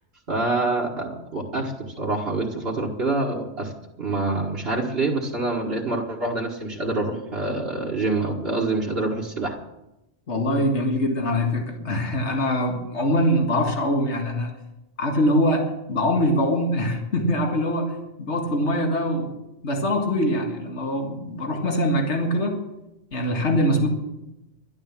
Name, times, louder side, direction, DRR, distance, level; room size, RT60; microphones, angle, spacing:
voice 1, 0.3-3.7 4.0-9.6, right 2 dB, 55° right, 0 dB, 1.9 m, -26 dB
voice 2, 10.3-14.5 15.0-19.3 19.6-22.6 23.1-23.9, equal, 70° left, 2 dB, 2.2 m, -23 dB
12.5 x 11.5 x 7.3 m, 0.90 s
omnidirectional pair, 1.2 m